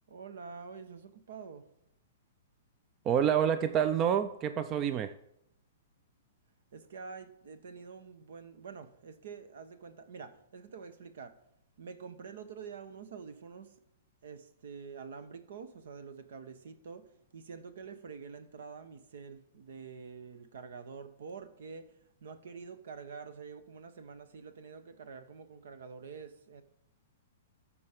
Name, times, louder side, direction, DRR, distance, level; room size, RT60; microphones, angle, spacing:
voice 1, 0.1-1.7 6.7-11.4 11.8-13.8 14.2-22.0 22.2-26.6, right 5 dB, 70° right, 12 dB, 1.0 m, -47 dB
voice 2, 3.0-5.1, right 9 dB, 30° right, 11 dB, 0.5 m, -28 dB
13.5 x 4.9 x 5.1 m, 0.79 s
hypercardioid pair, 120°, 0 cm